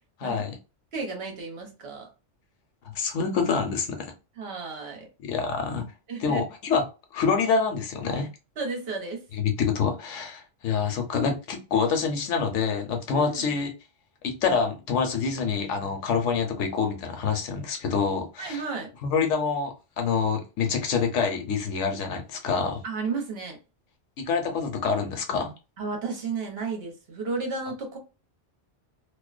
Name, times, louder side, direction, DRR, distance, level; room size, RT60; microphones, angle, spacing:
voice 1, 0.2-0.6 2.9-4.1 5.2-5.9 6.2-6.8 7.1-8.3 9.3-13.7 14.2-18.6 19.0-22.8 24.2-25.5, left 5 dB, 90° left, 1.0 m, -26 dB
voice 2, 0.9-2.1 4.4-5.1 6.1-6.4 8.6-9.2 13.1-13.6 18.4-18.9 22.8-23.6 25.8-28.0, right 4 dB, 60° right, 1.0 m, -33 dB
2.5 x 2.1 x 2.4 m
omnidirectional pair, 1.2 m